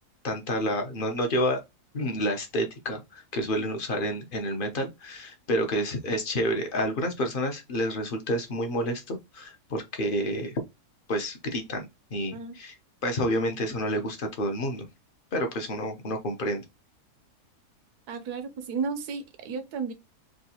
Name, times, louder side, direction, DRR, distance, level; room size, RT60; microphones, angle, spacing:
voice 1, 0.2-1.6 1.9-10.5 11.1-12.8 13.0-14.9 15.3-16.6, equal, 50° left, 0.6 m, -29 dB
voice 2, 18.1-19.9, right 5 dB, 85° right, 1.2 m, -33 dB
3.6 x 2.4 x 2.7 m
omnidirectional pair, 1.6 m